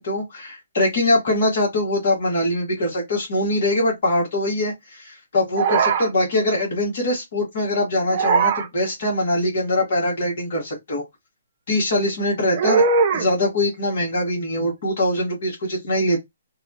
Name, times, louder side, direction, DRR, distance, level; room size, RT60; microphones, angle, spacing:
voice 1, 0.0-11.0 11.7-12.8 13.1-16.2, left 1 dB, 55° left, 1.3 m, -22 dB
sound 1, 5.6-6.1 8.1-8.7 12.5-13.3, right 5 dB, 40° right, 0.5 m, -19 dB
2.7 x 2.2 x 2.7 m
hypercardioid pair, 140°, 0 cm